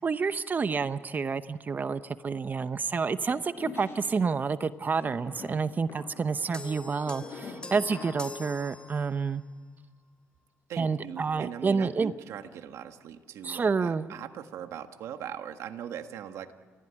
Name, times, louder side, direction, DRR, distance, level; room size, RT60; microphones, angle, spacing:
voice 1, 0.0-9.4 10.8-12.1 13.4-14.1, right 5 dB, 35° right, 13 dB, 0.9 m, -29 dB
sound 1, 3.3-4.3 4.9-8.4, left 4 dB, 55° left, 5.3 m, -45 dB
sound 2, 6.5-9.4, left 3 dB, 20° left, 3.3 m, -43 dB
voice 2, 10.7-16.5, right 9 dB, 75° right, 7 dB, 1.6 m, -40 dB
30.0 x 15.0 x 9.9 m, 1.4 s
cardioid pair, 85°, 5 cm